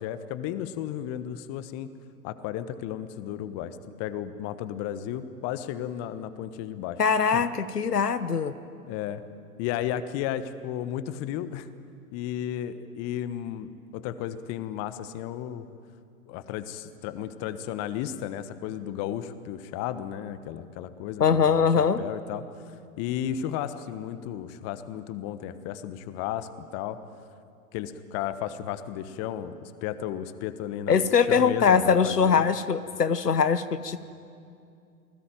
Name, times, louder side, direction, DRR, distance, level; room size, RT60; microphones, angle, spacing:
voice 1, 0.0-1.9 2.2-7.0 7.3-7.5 8.9-9.2 9.6-11.7 12.1-15.7 16.3-22.4 23.0-27.0 27.7-32.4, left 10 dB, 30° left, 12 dB, 1.3 m, -34 dB
voice 2, 7.0-8.5 21.2-22.0 30.9-34.0, left 6 dB, 80° left, 13 dB, 1.2 m, -22 dB
28.5 x 19.5 x 9.2 m, 2.5 s
figure-of-eight pair, 105°, 47 cm